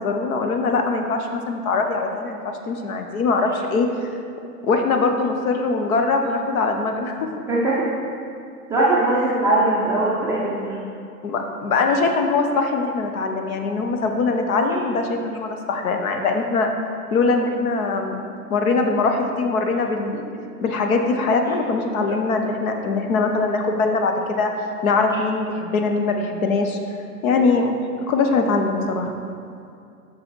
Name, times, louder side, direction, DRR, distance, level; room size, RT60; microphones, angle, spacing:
voice 1, 0.0-4.1 4.6-7.3 11.2-16.7 17.1-18.2 18.5-20.2 20.6-24.5 24.8-26.8 27.2-27.7 28.1-29.1, left 3 dB, 60° left, 4 dB, 1.0 m, -22 dB
voice 2, 7.5-7.9 8.7-10.8, right 2 dB, 5° right, -8 dB, 0.4 m, -20 dB
6.2 x 6.0 x 4.6 m, 2.4 s
hypercardioid pair, 120°, 47 cm